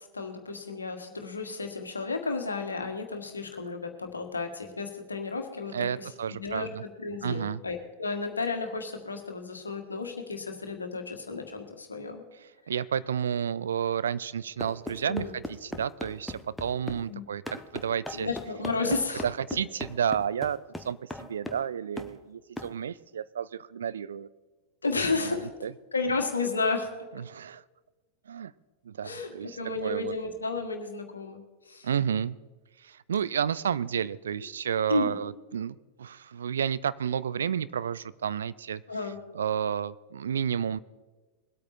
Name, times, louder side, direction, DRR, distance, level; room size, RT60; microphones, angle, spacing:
voice 1, 0.1-6.1 6.4-6.7 7.0-12.2 15.0-15.3 17.1-17.2 18.1-19.3 24.8-25.5 25.9-26.9 29.0-31.9 34.9-35.1 38.9-39.2, left 3 dB, 75° left, 5 dB, 1.7 m, -32 dB
voice 2, 5.7-6.8 7.2-7.6 12.7-18.3 18.8-19.0 19.2-24.3 25.1-25.7 27.1-27.6 28.3-28.5 28.8-30.1 31.8-32.4 32.8-38.8 39.3-40.8, right 8 dB, 65° right, 17 dB, 0.4 m, -31 dB
sound 1, 14.6-17.0 17.5-21.7 22.0-22.2 22.6-22.7, left 1 dB, 5° left, 1.1 m, -39 dB
21.0 x 8.7 x 4.3 m, 1.2 s
figure-of-eight pair, 90°, 0 cm